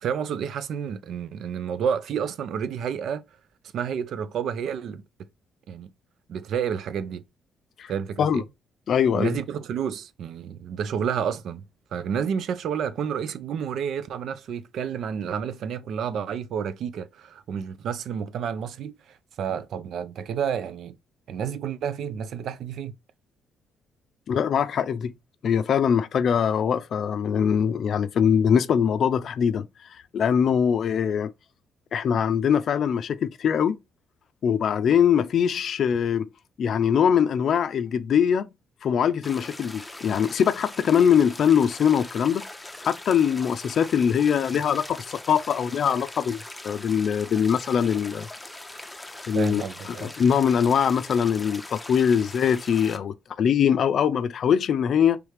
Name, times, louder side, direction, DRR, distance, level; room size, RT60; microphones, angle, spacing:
voice 1, 0.0-3.2 3.7-5.0 5.7-5.9 6.3-7.2 7.9-8.4 9.1-11.6 11.9-21.0 21.3-22.9 49.3-50.1, right 7 dB, 70° right, 0.5 m, -30 dB
voice 2, 8.9-9.4 24.3-25.1 25.4-29.7 30.1-31.3 31.9-33.8 34.4-36.3 36.6-38.5 38.8-42.4 42.8-46.4 46.6-48.3 49.3-49.6 50.0-55.2, left 8 dB, 60° left, 0.4 m, -22 dB
sound 1, 39.2-53.0, left 2 dB, 10° left, 0.7 m, -41 dB
4.8 x 3.3 x 3.2 m
cardioid pair, 90°, 0 cm